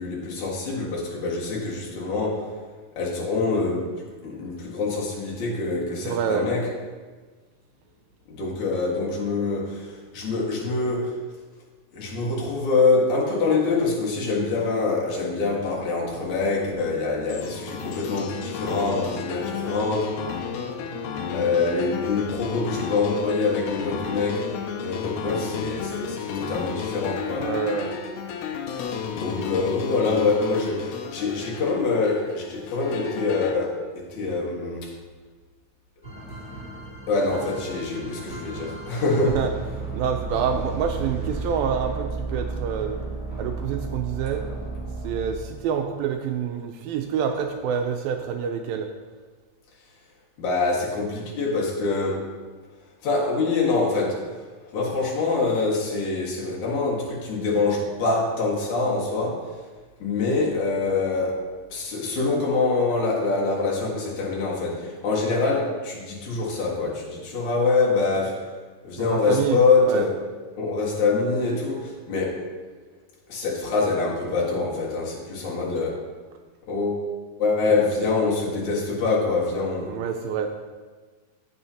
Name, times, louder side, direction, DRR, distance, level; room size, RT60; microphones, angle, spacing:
voice 1, 0.0-2.5 3.0-3.9 4.2-6.7 8.3-11.1 11.9-20.1 21.3-24.5 24.8-27.5 28.8-34.9 37.1-39.4 50.4-52.3 53.0-54.3 54.7-59.5 60.0-68.5 68.8-70.2 70.6-72.4 73.3-76.0 76.7-77.1 77.4-79.9, left 3 dB, 55° left, -4 dB, 2.7 m, -25 dB
voice 2, 6.0-6.5 27.4-28.0 29.4-29.5 39.2-43.0 43.4-44.4 45.0-48.9 69.0-70.1 79.8-80.5, right 7 dB, 85° right, 5 dB, 2.1 m, -27 dB
sound 1, 17.3-33.6, left 7 dB, 85° left, 2.7 m, -32 dB
sound 2, 36.0-45.8 47.3-47.5 48.0-48.2, right 3 dB, 25° left, 1.0 m, -33 dB
15.5 x 6.3 x 2.8 m, 1.4 s
omnidirectional pair, 4.6 m